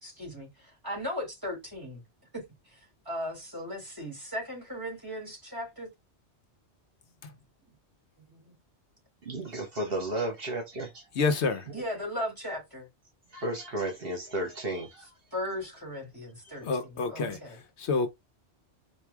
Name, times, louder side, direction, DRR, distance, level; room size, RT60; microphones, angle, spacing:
voice 1, 0.0-2.0 2.3-2.4 2.7-5.9 8.3-8.6 11.7-12.9 15.3-16.7 16.9-17.6, equal, 20° right, 2.8 m, -37 dB
voice 2, 9.2-11.1 13.3-15.2 16.4-16.6, right 1 dB, 55° right, 1.2 m, -33 dB
voice 3, 11.2-11.7 16.6-18.1, left 4 dB, 70° left, 1.0 m, -29 dB
4.5 x 2.6 x 3.4 m
omnidirectional pair, 1.2 m